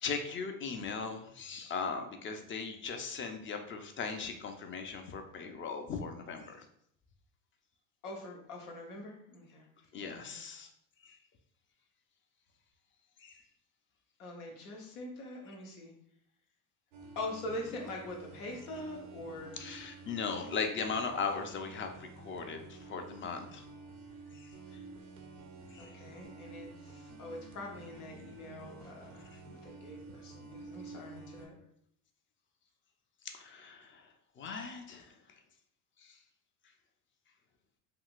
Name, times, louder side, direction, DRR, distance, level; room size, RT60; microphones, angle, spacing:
voice 1, 0.0-6.6 9.9-10.7 11.1-11.2 13.2-13.4 19.6-21.9 22.2-23.6 24.4-24.5 25.7-25.9 33.3-34.0 34.4-35.1 36.0-36.1, left 5 dB, 30° left, 5 dB, 0.4 m, -38 dB
voice 2, 8.0-9.6 10.0-10.4 14.2-15.9 17.2-19.6 25.8-31.5, left 1 dB, 85° left, 0 dB, 0.9 m, -44 dB
sound 1, 16.9-31.5, right 3 dB, 85° right, 0.8 m, -50 dB
3.7 x 2.4 x 2.4 m, 0.69 s
hypercardioid pair, 85°, 43 cm